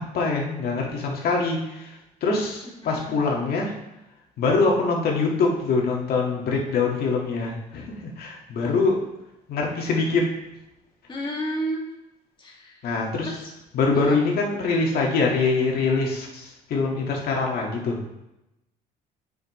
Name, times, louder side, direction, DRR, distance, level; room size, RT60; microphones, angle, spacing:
voice 1, 0.0-3.7 4.4-9.0 9.5-10.3 12.8-13.3 13.7-18.0, left 4 dB, 65° left, -1 dB, 1.9 m, -24 dB
voice 2, 2.8-3.2 11.1-11.8 12.4-12.7 13.2-13.4 14.1-14.2, right 1 dB, 30° left, -2 dB, 2.1 m, -31 dB
9.2 x 5.5 x 3.2 m, 0.91 s
cardioid pair, 110°, 17 cm